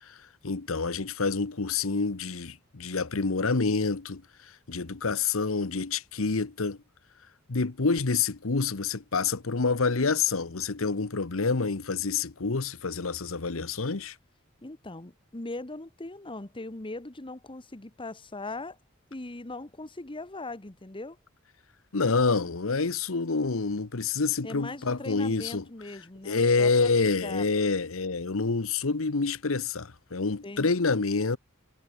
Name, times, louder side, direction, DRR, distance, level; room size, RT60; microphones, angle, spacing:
voice 1, 0.0-6.8 7.5-14.2 21.9-25.6 26.2-31.4, left 4 dB, 85° left, 1.1 m, -27 dB
voice 2, 14.6-18.8 19.1-21.2 24.4-26.9 27.2-27.4 30.4-30.7, left 2 dB, 25° left, 1.3 m, -40 dB
head